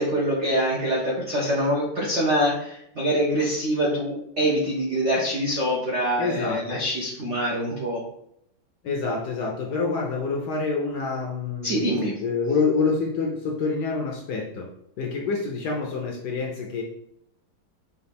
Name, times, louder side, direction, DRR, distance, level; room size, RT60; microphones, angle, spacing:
voice 1, 0.0-8.0 11.6-12.2, equal, 80° right, -3 dB, 0.6 m, -24 dB
voice 2, 6.2-6.8 8.8-14.7 15.0-16.8, left 4 dB, 70° left, 0 dB, 1.0 m, -27 dB
5.0 x 2.5 x 3.4 m, 0.75 s
omnidirectional pair, 2.3 m